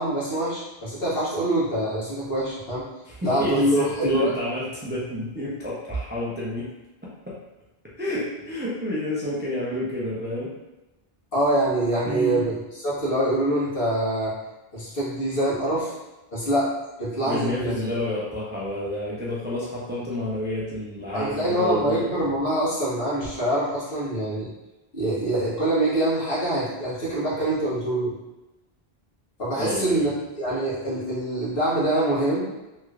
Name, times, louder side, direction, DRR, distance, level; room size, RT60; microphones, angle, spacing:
voice 1, 0.0-2.9 3.2-4.3 11.3-14.3 14.7-15.9 16.3-17.7 21.1-24.5 24.9-28.1 29.4-32.4, right 1 dB, 65° left, -9 dB, 1.4 m, -25 dB
voice 2, 3.0-6.7 7.3-7.4 8.0-10.5 12.1-12.5 17.3-22.0 29.6-30.1, left 1 dB, 15° right, -6 dB, 0.4 m, -29 dB
3.1 x 3.0 x 2.4 m, 1.0 s
omnidirectional pair, 1.0 m